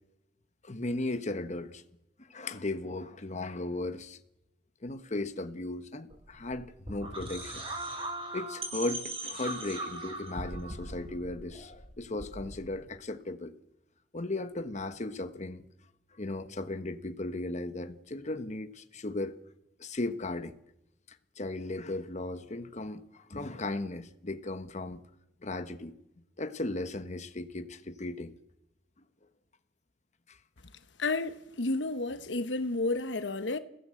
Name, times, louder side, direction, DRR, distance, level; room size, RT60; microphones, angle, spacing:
voice 1, 0.6-1.8 2.2-4.2 4.8-7.6 8.3-13.5 14.1-15.6 16.1-19.4 19.8-20.6 21.1-25.0 25.4-25.9 26.4-28.3 30.3-30.4, left 2 dB, 40° left, 1.1 m, -36 dB
sound 1, 6.1-12.8, right 2 dB, 35° right, 6.6 m, -39 dB
voice 2, 31.0-33.6, left 2 dB, 90° left, 1.2 m, -31 dB
29.0 x 16.0 x 7.8 m
head